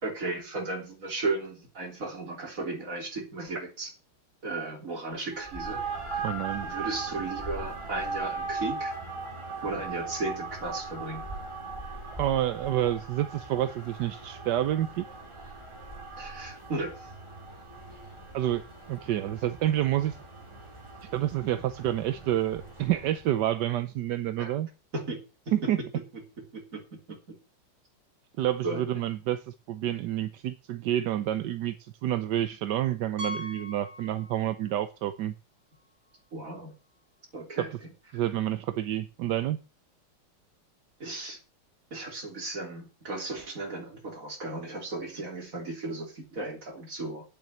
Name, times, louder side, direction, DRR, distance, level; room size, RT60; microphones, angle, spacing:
voice 1, 0.0-3.9 4.4-6.4 6.6-8.9 9.6-11.3 16.2-17.1 24.4-24.5 24.9-25.2 26.1-26.2 26.5-27.2 28.6-28.8 36.3-36.7 37.3-37.7 41.0-41.4 41.9-47.2, right 3 dB, 40° right, 3.6 m, -35 dB
sound 1, 5.3-23.2, right 3 dB, 15° right, 2.5 m, -39 dB
voice 2, 6.2-6.7 12.2-15.1 18.3-20.2 21.1-24.7 25.5-25.8 28.4-35.3 37.6-37.7 38.1-39.6, right 12 dB, 65° right, 1.2 m, -29 dB
Piano, 33.2-34.8 35.1-35.2 35.8-35.9 36.1-36.2 38.3-38.4, left 1 dB, 85° right, 3.3 m, -40 dB
9.5 x 7.6 x 8.2 m
omnidirectional pair, 2.3 m